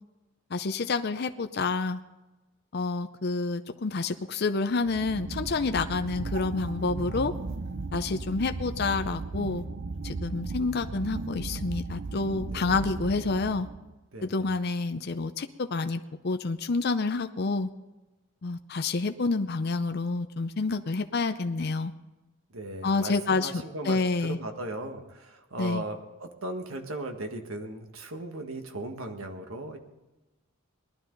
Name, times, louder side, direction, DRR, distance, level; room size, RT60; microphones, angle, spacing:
voice 1, 0.5-2.0 2.7-7.3 7.9-9.6 10.0-13.7 14.2-17.7 18.4-21.9 22.8-24.4 25.6-25.8, left 3 dB, 50° left, 8 dB, 0.5 m, -28 dB
sound 1, 4.8-13.9, right 3 dB, 60° right, 0.6 m, -36 dB
voice 2, 12.5-12.9 14.1-14.5 22.5-24.0 24.3-29.8, right 1 dB, 90° right, 5 dB, 1.7 m, -37 dB
19.5 x 12.0 x 3.9 m, 1.1 s
head